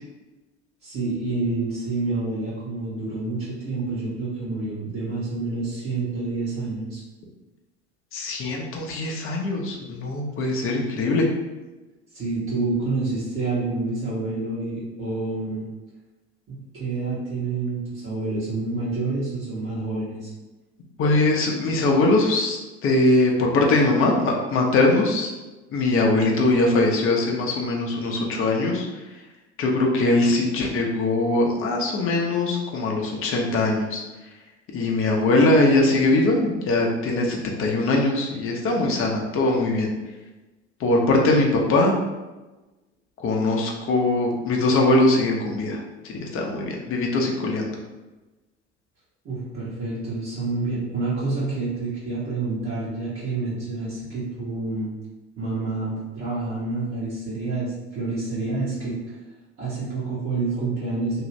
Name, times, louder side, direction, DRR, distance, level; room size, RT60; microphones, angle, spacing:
voice 1, 0.8-7.0 12.1-15.7 16.5-20.3 49.2-54.9 55.4-59.1 59.6-61.2, right 3 dB, 40° right, -8 dB, 1.1 m, -28 dB
voice 2, 8.1-11.3 21.0-25.3 25.7-28.9 29.6-34.0 34.7-39.9 40.8-42.0 43.2-47.8, left 2 dB, 40° left, 0 dB, 0.7 m, -21 dB
2.7 x 2.4 x 3.2 m, 1.1 s
hypercardioid pair, 65°, 35 cm